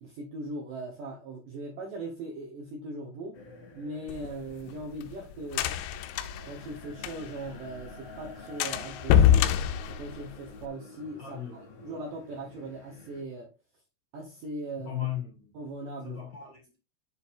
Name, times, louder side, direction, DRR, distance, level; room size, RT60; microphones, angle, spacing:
voice 1, 0.0-3.4 3.7-5.7 6.2-9.5 9.9-13.5 14.1-14.9 15.5-16.5, right 2 dB, 90° right, 1.8 m, -40 dB
sound 1, 3.3-13.2, left 2 dB, 55° left, 1.8 m, -50 dB
sound 2, 4.1-7.5 7.8-7.9 8.2-8.3 8.6-10.7, left 10 dB, 80° left, 3.1 m, -25 dB
voice 2, 11.2-11.8 14.8-15.5 16.0-16.8, left 11 dB, 25° left, 2.7 m, -37 dB
7.7 x 7.0 x 2.6 m
omnidirectional pair, 5.9 m